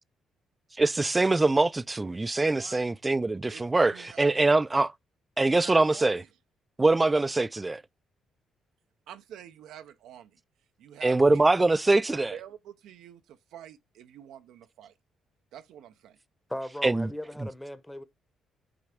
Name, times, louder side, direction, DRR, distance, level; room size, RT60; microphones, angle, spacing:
voice 1, 0.8-4.9 5.4-6.2 6.8-7.8 11.0-12.3 16.8-17.1, right 2 dB, 20° right, 0.3 m, -23 dB
voice 2, 2.5-2.9 3.5-4.5 5.5-6.2 9.1-10.4 10.8-11.7 12.1-14.9 15.5-16.2, right 10 dB, 85° right, 0.6 m, -48 dB
voice 3, 16.5-18.0, left 1 dB, 10° left, 0.9 m, -37 dB
8.6 x 3.3 x 4.9 m
cardioid pair, 90°, 0 cm